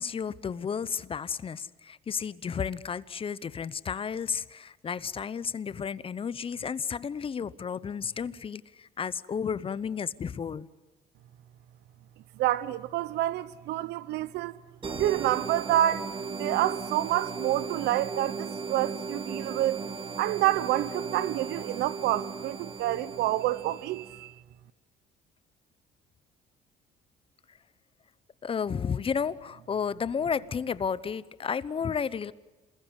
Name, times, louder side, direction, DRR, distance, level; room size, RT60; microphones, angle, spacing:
voice 1, 0.0-10.7 28.4-32.3, left 6 dB, 30° left, 0.9 m, -32 dB
voice 2, 12.4-14.5 15.0-16.1 16.4-19.8 20.2-24.3, right 14 dB, 80° right, 0.9 m, -28 dB
sound 1, 14.8-24.2, right 5 dB, 30° right, 1.8 m, -37 dB
28.0 x 21.0 x 8.2 m
cardioid pair, 110°, 17 cm